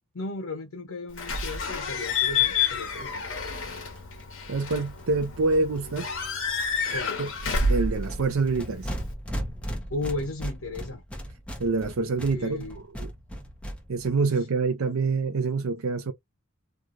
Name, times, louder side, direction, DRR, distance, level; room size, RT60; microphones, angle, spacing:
voice 1, 0.1-3.2 6.9-7.2 9.9-11.0 12.3-12.8, left 2 dB, 80° left, 0.7 m, -35 dB
Slam / Squeak / Alarm, 1.2-9.1, left 4 dB, 65° left, 1.1 m, -29 dB
sound 1, 1.7-1.8 2.1-2.2 2.4-2.5 2.6-5.9 6.2-6.6 6.9-14.1, equal, 5° left, 0.9 m, -38 dB
voice 2, 4.5-6.1 7.2-7.3 7.7-8.9 11.6-13.1 13.9-16.1, right 3 dB, 70° right, 0.5 m, -26 dB
3.2 x 2.4 x 2.5 m
head